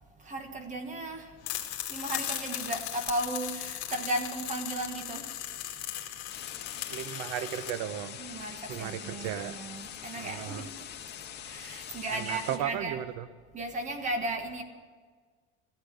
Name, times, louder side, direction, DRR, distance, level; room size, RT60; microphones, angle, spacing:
voice 1, 0.2-1.3 1.9-5.3 8.2-10.8 11.4-13.0 13.5-14.6, right 2 dB, 25° right, 1.4 m, -35 dB
sound 1, 1.4-7.7, left 12 dB, 50° left, 2.3 m, -37 dB
sound 2, 6.3-12.6, left 9 dB, 35° left, 1.7 m, -43 dB
voice 2, 6.9-8.2 8.7-9.6 10.2-10.7 12.1-13.2, right 10 dB, 70° right, 0.8 m, -35 dB
15.0 x 12.0 x 8.1 m
cardioid pair, 175°, 31 cm